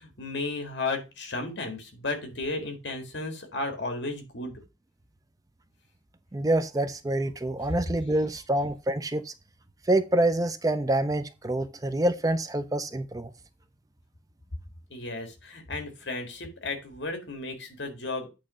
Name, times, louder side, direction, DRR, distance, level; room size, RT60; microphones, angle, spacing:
voice 1, 0.0-4.5 14.9-18.3, left 3 dB, 65° left, 1.9 m, -34 dB
voice 2, 6.3-9.3 9.9-13.3, right 1 dB, 20° right, 0.4 m, -26 dB
8.6 x 3.2 x 6.1 m
head